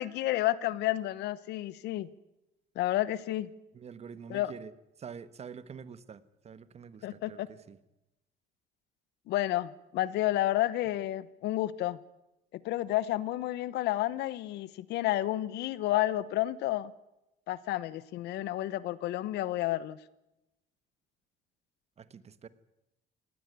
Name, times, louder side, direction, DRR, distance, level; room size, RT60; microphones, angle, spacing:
voice 1, 0.0-2.1 2.8-3.5 4.3-4.5 7.0-7.5 9.3-12.0 12.6-16.9 17.5-20.0, left 15 dB, 80° left, 18 dB, 1.0 m, -30 dB
voice 2, 3.7-4.7 5.0-7.8 22.0-22.5, right 6 dB, 40° right, 15 dB, 1.3 m, -46 dB
19.0 x 16.5 x 9.5 m, 0.92 s
cardioid pair, 110°, 17 cm